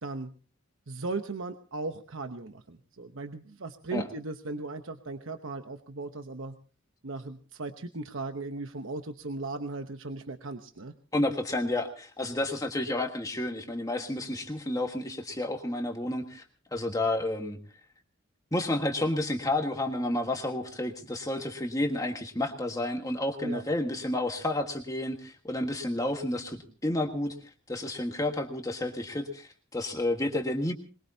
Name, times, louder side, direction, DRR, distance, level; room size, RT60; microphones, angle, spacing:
voice 1, 0.9-6.6 7.0-10.9 23.4-23.6, right 3 dB, 75° right, 7 dB, 1.0 m, -37 dB
voice 2, 11.1-16.4 16.7-17.6 18.5-27.3 27.7-30.7, left 1 dB, 15° left, 4 dB, 1.5 m, -30 dB
22.0 x 21.5 x 2.8 m, 0.37 s
head